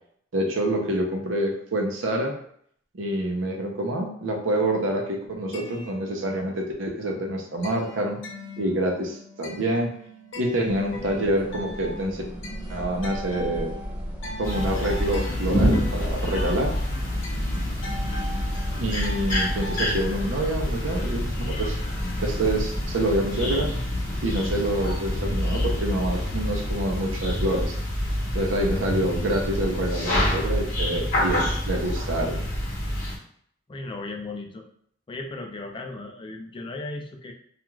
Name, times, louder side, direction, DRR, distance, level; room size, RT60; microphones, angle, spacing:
voice 1, 0.3-2.4 2.9-8.2 8.6-9.9 10.4-12.2 12.7-13.7 14.4-16.7 18.8-21.8 22.2-23.7 24.2-27.8 28.3-32.4, right 1 dB, 75° right, 1 dB, 0.6 m, -27 dB
sound 1, 5.3-6.7 7.1-19.9, left 1 dB, 70° left, 0.7 m, -40 dB
sound 2, 10.6-22.9, equal, 20° right, 0.8 m, -35 dB
sound 3, 14.4-33.2, left 1 dB, 40° left, 0.8 m, -27 dB
voice 2, 33.7-34.6 35.1-37.3, left 2 dB, 25° left, 3 dB, 0.3 m, -36 dB
2.4 x 2.3 x 3.0 m, 0.66 s
head